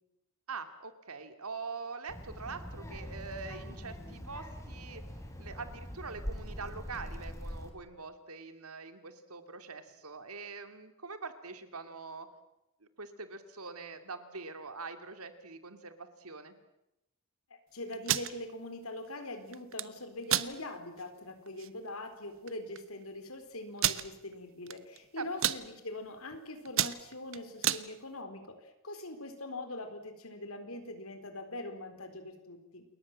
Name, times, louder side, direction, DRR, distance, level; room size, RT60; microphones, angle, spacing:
voice 1, 0.5-5.0 5.4-12.3 12.8-16.6 25.2-25.3, right 4 dB, 80° right, 9 dB, 2.6 m, -44 dB
Child speech kid speaking, 2.1-7.7, equal, 15° left, 4.0 m, -43 dB
voice 2, 17.5-32.8, left 1 dB, 70° left, 8 dB, 4.2 m, -43 dB
sound 1, 17.9-18.3 19.5-19.9 20.3-20.5 21.0-21.1 21.5-21.7 22.5-22.6 22.8-22.9 23.8-24.0 24.7-25.0 25.2-25.6 26.2-26.4 26.7-27.8, right 11 dB, 60° right, 1.0 m, -29 dB
28.5 x 22.0 x 7.5 m, 0.87 s
head